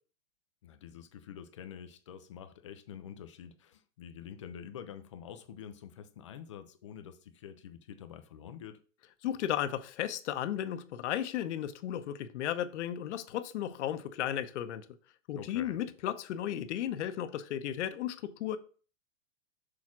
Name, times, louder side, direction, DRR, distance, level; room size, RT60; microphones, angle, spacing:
voice 1, 0.6-8.8 15.4-15.8, left 8 dB, 25° left, 0.3 m, -47 dB
voice 2, 9.2-14.9 15.3-18.6, left 11 dB, 60° left, 0.9 m, -34 dB
6.3 x 3.6 x 5.9 m
hypercardioid pair, 155°, 40 cm